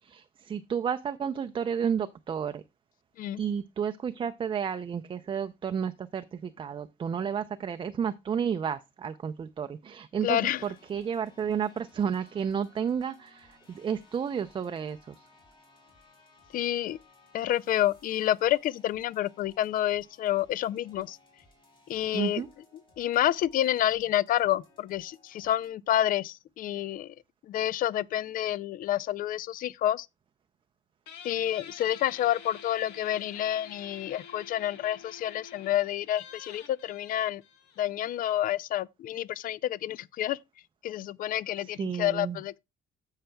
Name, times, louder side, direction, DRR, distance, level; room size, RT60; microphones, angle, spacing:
voice 1, 0.0-2.6 3.4-15.3 22.1-22.5 41.6-42.4, right 7 dB, 30° right, 0.4 m, -32 dB
voice 2, 10.2-10.6 16.5-17.0 17.3-21.2 21.9-22.4 23.0-27.1 27.5-30.1 31.2-37.4 37.8-40.4 40.8-42.6, left 12 dB, 55° left, 0.4 m, -29 dB
sound 1, 10.5-25.7, left 2 dB, 30° left, 3.9 m, -61 dB
Guitar, 31.1-38.2, left 7 dB, 90° left, 1.6 m, -48 dB
15.5 x 5.7 x 2.2 m
cardioid pair, 110°, 17 cm